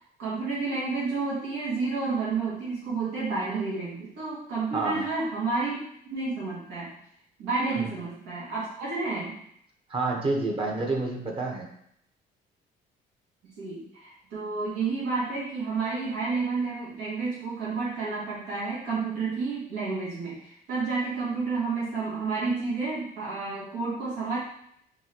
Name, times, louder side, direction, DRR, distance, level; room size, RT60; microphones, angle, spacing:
voice 1, 0.0-5.8 6.1-6.9 7.4-9.4 13.6-24.4, right 4 dB, 85° right, -7 dB, 1.5 m, -30 dB
voice 2, 4.7-5.0 7.7-7.9 9.9-11.7, right 3 dB, 30° right, 0 dB, 1.0 m, -28 dB
5.5 x 2.8 x 2.9 m, 0.71 s
cardioid pair, 110°, 17 cm